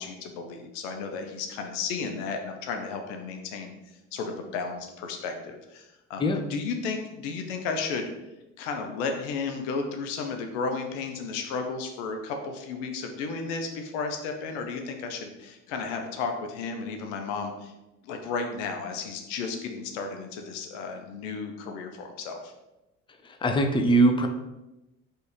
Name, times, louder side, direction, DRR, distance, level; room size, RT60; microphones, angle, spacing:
voice 1, 0.0-3.7 4.1-6.2 6.5-8.1 8.6-17.7 18.0-22.5, left 4 dB, 85° left, 5 dB, 0.7 m, -33 dB
voice 2, 23.4-24.3, right 1 dB, 15° left, 5 dB, 0.5 m, -21 dB
4.4 x 3.2 x 3.1 m, 0.97 s
hypercardioid pair, 65°, 36 cm